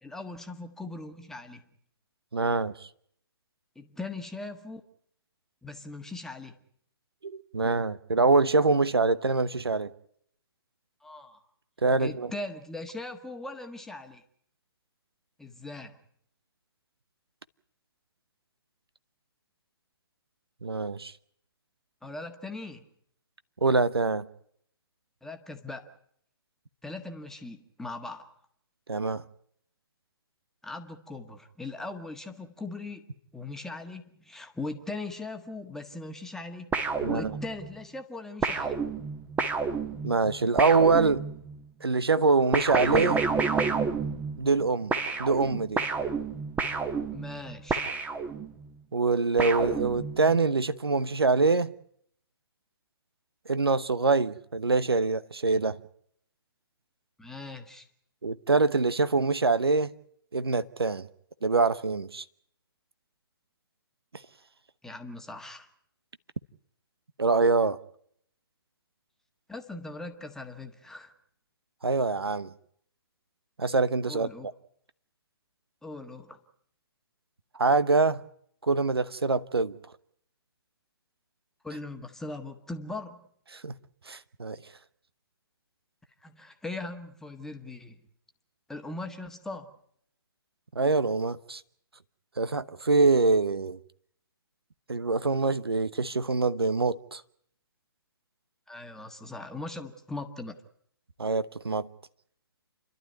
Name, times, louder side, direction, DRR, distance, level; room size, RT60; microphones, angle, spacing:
voice 1, 0.0-1.6 3.7-4.8 5.6-6.6 11.0-11.4 12.0-14.2 15.4-16.0 22.0-22.8 25.2-26.0 26.8-28.3 30.6-38.8 47.1-47.8 57.2-57.9 64.8-65.7 69.5-71.1 74.1-74.5 75.8-76.4 81.6-83.2 86.2-88.0 88.7-89.7 98.7-100.6, left 2 dB, 5° left, 1.5 m, -40 dB
voice 2, 2.3-2.9 7.2-9.9 11.8-12.3 20.6-21.1 23.6-24.3 28.9-29.2 37.0-37.3 40.0-41.2 41.8-43.2 44.4-44.9 45.2-45.8 48.9-51.7 53.5-55.8 58.2-59.9 60.3-61.1 61.4-62.2 67.2-67.8 71.8-72.5 73.6-74.3 77.6-78.2 78.6-79.8 83.5-83.7 84.1-84.6 90.7-91.6 92.4-93.8 94.9-97.2 101.2-101.9, right 3 dB, 80° right, 1.0 m, -24 dB
sound 1, 36.7-37.7 38.4-41.6 42.5-44.6 44.9-48.7 49.4-50.4, right 5 dB, 10° right, 1.3 m, -30 dB
30.0 x 12.0 x 9.4 m
figure-of-eight pair, 130°, 13 cm